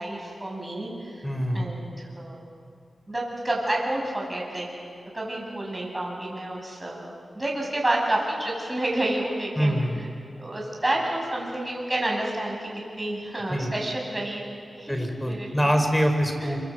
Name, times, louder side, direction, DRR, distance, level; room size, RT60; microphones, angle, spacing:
voice 1, 0.0-1.2 1.5-2.5 3.1-4.7 5.1-9.8 10.3-14.4 14.7-14.9 15.2-15.8 16.4-16.5, right 1 dB, 25° right, -1 dB, 8.0 m, -29 dB
voice 2, 1.2-1.6 9.6-10.0 13.5-13.7 14.9-16.6, equal, 10° left, 5 dB, 5.5 m, -24 dB
26.0 x 25.5 x 8.1 m, 2.6 s
cardioid pair, 40°, 0 cm